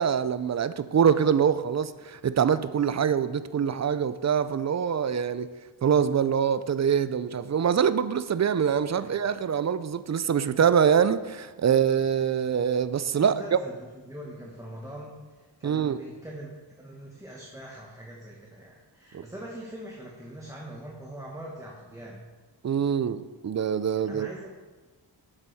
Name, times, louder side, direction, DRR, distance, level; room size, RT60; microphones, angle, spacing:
voice 1, 0.0-5.5 5.8-13.6 15.6-16.0 19.1-19.2 22.6-24.3, right 7 dB, 40° right, 0.5 m, -24 dB
voice 2, 13.1-16.5 16.8-22.2 23.9-24.5, right 1 dB, 5° right, 1.4 m, -42 dB
7.9 x 7.4 x 4.1 m
cardioid pair, 65°, 43 cm